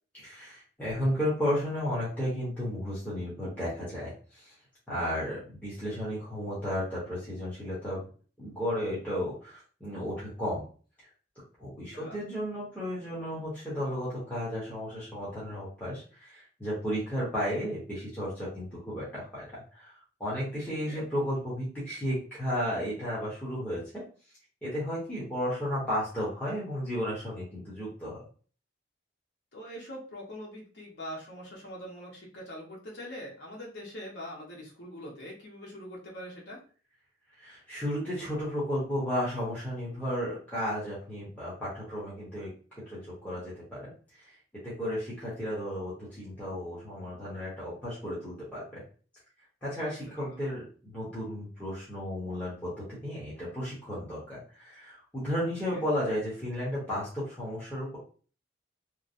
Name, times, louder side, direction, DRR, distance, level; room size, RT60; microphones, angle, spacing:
voice 1, 0.2-4.5 4.9-8.0 8.4-10.7 11.6-24.0 24.6-28.2 37.4-42.5 42.9-43.9 44.2-44.3 44.6-48.8 49.6-58.0, equal, 10° left, -9 dB, 0.9 m, -33 dB
voice 2, 20.7-21.0 29.5-36.6 50.2-50.4 55.7-55.9, equal, 60° left, -3 dB, 1.0 m, -43 dB
3.0 x 2.0 x 2.5 m, 0.40 s
head